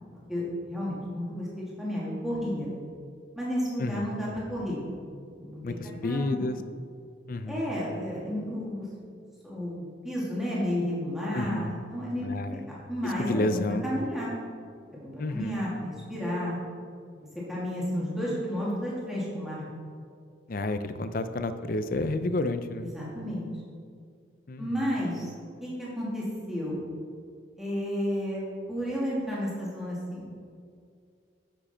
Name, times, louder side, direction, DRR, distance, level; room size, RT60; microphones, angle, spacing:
voice 1, 0.3-2.7 3.3-4.8 5.3-5.7 6.0-6.4 7.5-8.9 9.4-14.3 14.9-16.6 17.1-19.6 22.8-23.5 24.6-25.3 25.6-26.7 27.6-28.4 28.7-30.2, equal, ahead, -7 dB, 2.4 m, -32 dB
voice 2, 3.8-4.1 5.6-6.6 7.3-7.7 11.3-11.7 12.2-12.7 13.0-13.8 15.2-15.5 20.5-22.9 24.5-25.0, left 2 dB, 50° left, 10 dB, 0.5 m, -30 dB
10.0 x 7.4 x 4.3 m, 2.3 s
head